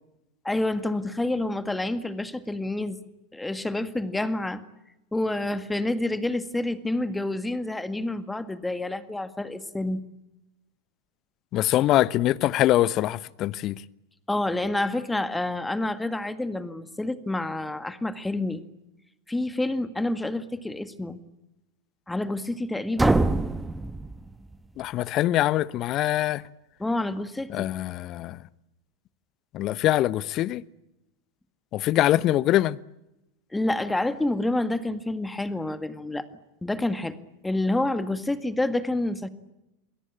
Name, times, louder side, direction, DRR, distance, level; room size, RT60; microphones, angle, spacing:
voice 1, 0.4-3.0 3.3-4.6 5.1-10.0 14.3-18.6 19.3-21.2 22.1-23.3 26.8-27.7 33.5-36.3 36.6-37.2 37.4-39.3, left 2 dB, 10° left, 2.0 m, -28 dB
voice 2, 11.5-13.8 24.8-26.4 27.5-28.4 29.5-30.6 31.7-32.8, left 14 dB, 40° left, 0.9 m, -23 dB
sound 1, 23.0-24.8, right 2 dB, 10° right, 1.3 m, -25 dB
29.0 x 21.5 x 8.7 m
figure-of-eight pair, 85°, 0 cm